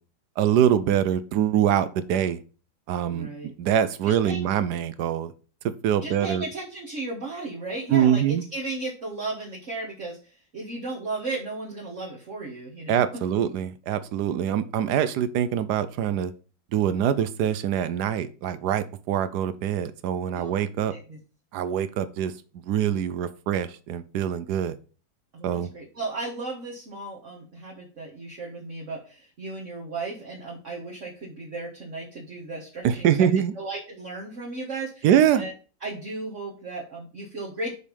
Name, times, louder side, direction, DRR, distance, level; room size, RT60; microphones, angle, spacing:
voice 1, 0.4-2.4 2.9-3.3 3.6-5.3 5.8-6.4 7.9-8.4 12.9-16.3 16.7-20.9 21.5-22.3 22.7-24.8 25.4-25.7 32.8-33.5 35.0-35.4, right 9 dB, 70° right, 14 dB, 1.0 m, -24 dB
voice 2, 3.1-3.5 4.0-4.4 6.0-13.0 20.3-20.5 20.9-21.2 25.3-33.2 33.5-35.1 35.3-35.5 35.8-37.7, right 3 dB, 40° right, -2 dB, 1.6 m, -35 dB
6.4 x 5.1 x 5.2 m, 0.36 s
omnidirectional pair, 2.2 m